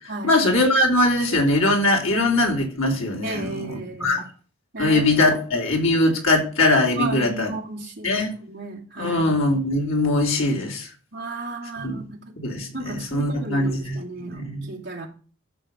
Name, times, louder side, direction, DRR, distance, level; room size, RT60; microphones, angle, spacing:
voice 1, 0.2-4.2 4.8-7.5 8.0-8.3 9.0-10.9 11.8-12.0 12.4-14.7, left 2 dB, 85° left, 1 dB, 2.9 m, -21 dB
voice 2, 3.2-4.2 4.7-5.2 6.9-9.2 11.1-12.3 12.7-15.1, right 2 dB, 55° right, -2 dB, 2.5 m, -33 dB
13.0 x 6.1 x 5.2 m, 0.39 s
head